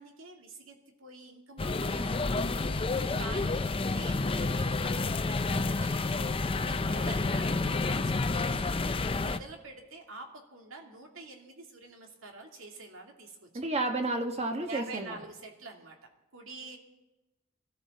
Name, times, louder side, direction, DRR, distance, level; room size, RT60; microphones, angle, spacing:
voice 1, 0.0-2.8 3.2-13.6 14.7-16.0 16.3-16.8, right 3 dB, 75° right, 2 dB, 2.4 m, -47 dB
sound 1, 1.6-9.4, left 3 dB, 25° left, 0.5 m, -29 dB
voice 2, 13.5-15.2, right 2 dB, 30° right, 5 dB, 1.3 m, -31 dB
23.5 x 13.5 x 4.2 m, 1.0 s
head